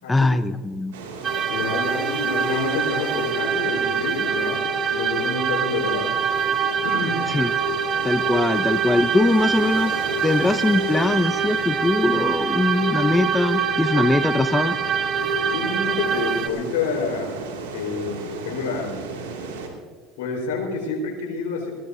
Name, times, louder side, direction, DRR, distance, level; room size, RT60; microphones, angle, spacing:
voice 1, 0.1-0.9 7.3-7.8 8.0-14.7, left 2 dB, 10° left, 11 dB, 0.6 m, -21 dB
sound 1, 0.9-19.7, right 4 dB, 90° right, 2.4 m, -36 dB
sound 2, 1.2-16.5, right 6 dB, 40° right, 1.2 m, -24 dB
voice 2, 1.5-4.6 4.9-6.2 6.8-7.2 15.5-17.4 17.7-19.0 20.2-21.7, left 4 dB, 80° left, 0 dB, 4.4 m, -28 dB
21.0 x 16.0 x 2.7 m, 1.5 s
supercardioid pair, 95°, 0 cm